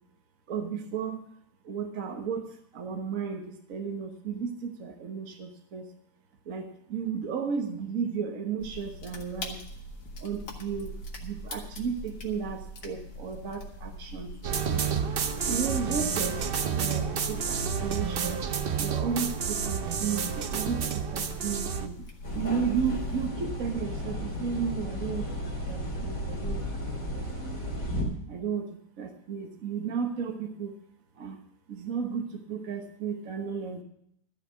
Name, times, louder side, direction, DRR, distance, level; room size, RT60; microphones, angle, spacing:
voice 1, 0.5-1.2 1.6-5.9 6.5-9.6 10.2-10.9 11.2-14.9 15.4-18.4 18.8-20.8 21.1-22.0 22.3-25.3 25.7-26.6 27.1-27.6 28.3-28.7 29.0-30.8 31.2-31.4 31.7-33.8, right 6 dB, 50° right, 3 dB, 1.5 m, -34 dB
sound 1, 8.6-23.3, equal, 65° left, 2.2 m, -42 dB
sound 2, 14.4-21.9, right 7 dB, 85° right, 0.5 m, -30 dB
sound 3, 22.2-28.0, equal, 35° left, 3.6 m, -33 dB
13.5 x 6.5 x 8.1 m, 0.71 s
omnidirectional pair, 2.1 m